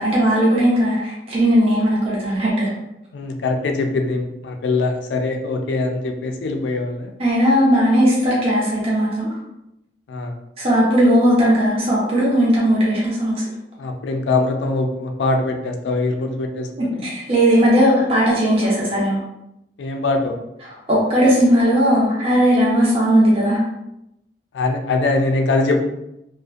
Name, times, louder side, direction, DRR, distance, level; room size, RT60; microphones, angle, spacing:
voice 1, 0.0-2.7 7.2-9.3 10.6-13.3 17.0-19.2 20.9-23.6, equal, 30° right, -6 dB, 0.5 m, -17 dB
voice 2, 3.1-7.1 10.1-10.3 13.8-17.0 19.8-20.4 24.5-25.8, left 3 dB, 75° left, 5 dB, 0.4 m, -22 dB
2.5 x 2.1 x 2.3 m, 0.87 s
head